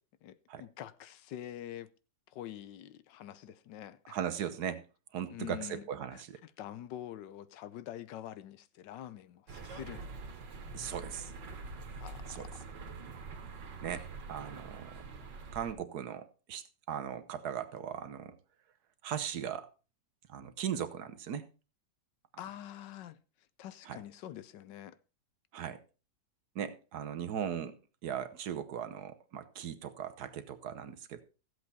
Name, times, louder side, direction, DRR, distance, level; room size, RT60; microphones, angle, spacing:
voice 1, 0.2-1.9 2.3-4.2 5.3-5.8 6.1-10.1 12.0-12.6 22.4-23.2 23.6-25.0, left 12 dB, 85° left, 1.4 m, -46 dB
voice 2, 4.1-4.8 5.1-6.4 10.7-11.3 11.9-12.0 12.3-12.5 13.8-15.0 15.5-18.3 19.0-19.7 20.3-21.4 23.9-24.0 25.5-25.8 26.5-27.8 28.0-31.2, right 9 dB, 65° right, 1.4 m, -38 dB
sound 1, 9.5-15.7, right 4 dB, 90° right, 2.1 m, -45 dB
14.5 x 8.0 x 4.1 m
omnidirectional pair, 1.9 m